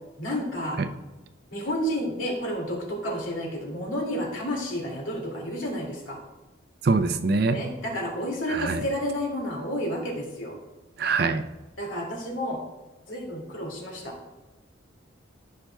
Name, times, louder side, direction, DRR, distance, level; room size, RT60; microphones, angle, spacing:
voice 1, 0.2-0.8 1.5-6.2 7.5-10.6 11.8-12.6 13.1-14.1, equal, 85° left, 0 dB, 2.3 m, -31 dB
voice 2, 6.8-7.6 8.5-8.8 11.0-11.5, right 3 dB, 50° right, 10 dB, 0.5 m, -24 dB
14.5 x 5.6 x 2.3 m, 1.1 s
head